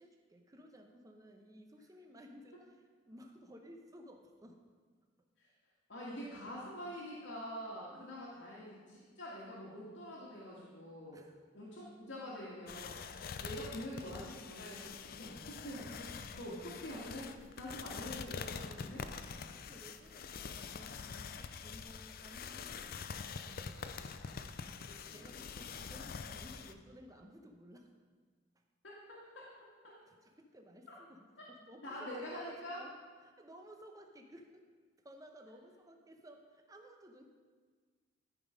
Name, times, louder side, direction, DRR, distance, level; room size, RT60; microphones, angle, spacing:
voice 1, 0.0-4.6 7.9-8.7 11.1-11.4 18.6-19.0 19.5-24.2 25.1-27.9 28.5-28.6 30.1-32.9 33.2-34.7 35.0-37.3, equal, 20° right, 3 dB, 0.9 m, -56 dB
voice 2, 5.9-11.2 11.5-16.1 16.3-17.3 17.6-19.0 25.0-25.2 28.8-29.5 29.8-29.9 31.4-31.5 31.8-32.8, equal, 80° left, -8 dB, 2.0 m, -46 dB
sound 1, 12.7-26.7, left 5 dB, 50° left, 0.5 m, -45 dB
13.0 x 5.4 x 5.1 m, 1.5 s
head